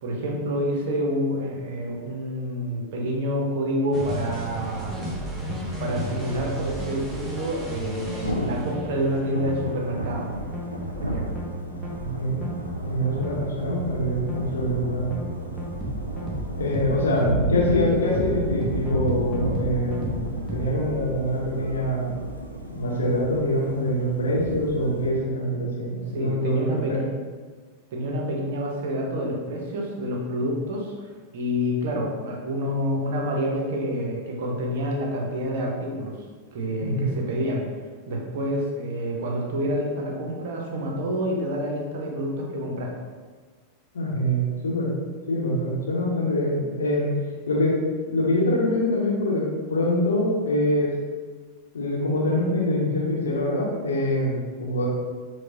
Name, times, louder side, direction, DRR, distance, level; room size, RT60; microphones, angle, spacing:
voice 1, 0.0-4.9 5.8-10.3 10.9-11.3 26.1-27.1 27.9-36.2 36.5-37.6 38.1-42.9, equal, 55° right, 0 dB, 0.6 m, -28 dB
sound 1, 3.9-20.6, right 1 dB, ahead, 0.7 m, -33 dB
Thunder / Rain, 8.1-25.1, equal, 90° left, 0.3 m, -33 dB
voice 2, 12.0-12.5 12.8-15.1 16.6-20.2 20.5-22.1 22.7-27.0 36.8-37.1 43.9-44.9 45.3-47.1 47.5-47.8 48.1-50.9 51.7-54.9, left 1 dB, 65° left, -2 dB, 0.7 m, -24 dB
4.5 x 2.1 x 2.6 m, 1.5 s
figure-of-eight pair, 90°, 0 cm